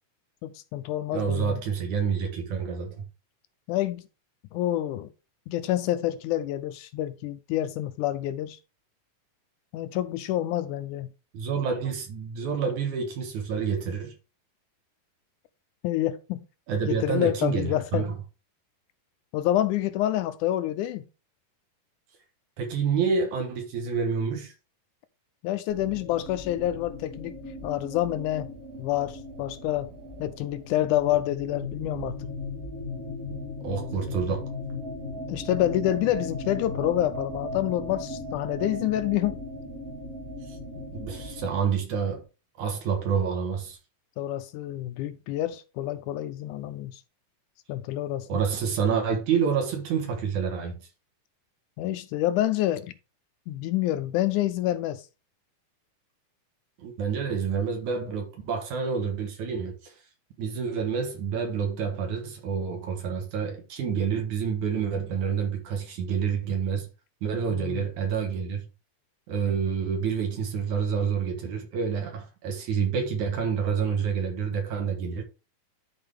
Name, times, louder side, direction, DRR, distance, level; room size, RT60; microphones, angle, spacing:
voice 1, 0.4-1.6 3.7-4.0 4.5-5.1 5.5-8.6 9.7-11.1 15.8-16.4 16.8-18.1 19.3-21.1 25.4-27.4 27.6-28.5 28.8-29.9 30.2-32.3 35.3-39.4 44.2-47.0 47.7-48.3 51.8-52.9 53.5-55.0 67.5-67.8, left 13 dB, 80° left, 1.9 m, -28 dB
voice 2, 1.1-3.0 11.3-14.1 16.7-18.1 22.6-24.5 33.6-34.5 40.5-40.6 40.9-42.2 42.6-43.8 48.3-50.8 56.8-59.9 60.4-66.9 67.2-68.6 69.3-75.2, right 6 dB, 65° right, 2.7 m, -28 dB
sound 1, 25.7-41.6, left 2 dB, 50° right, 3.2 m, -37 dB
12.0 x 4.4 x 3.5 m
omnidirectional pair, 3.8 m